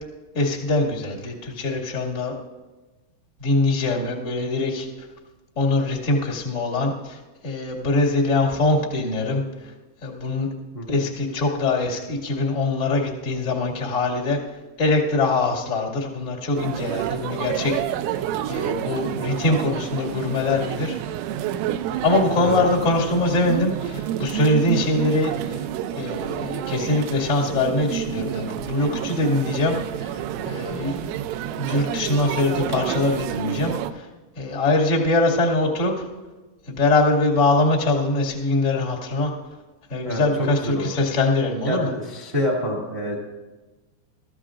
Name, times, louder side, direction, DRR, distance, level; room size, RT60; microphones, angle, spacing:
voice 1, 0.3-2.4 3.4-4.9 5.5-9.4 10.0-10.5 10.9-14.4 14.8-17.8 18.1-18.2 18.5-21.0 22.0-25.6 25.9-31.2 31.6-34.1 34.3-36.1 36.7-39.3 39.9-41.9, left 2 dB, 60° left, -3 dB, 0.7 m, -23 dB
voice 2, 10.7-11.1 22.4-22.6 40.0-41.0 41.6-43.2, equal, 45° right, -1 dB, 0.7 m, -27 dB
sound 1, 16.6-33.9, right 11 dB, 90° right, 3.2 m, -29 dB
25.0 x 13.5 x 2.5 m, 1.2 s
omnidirectional pair, 5.6 m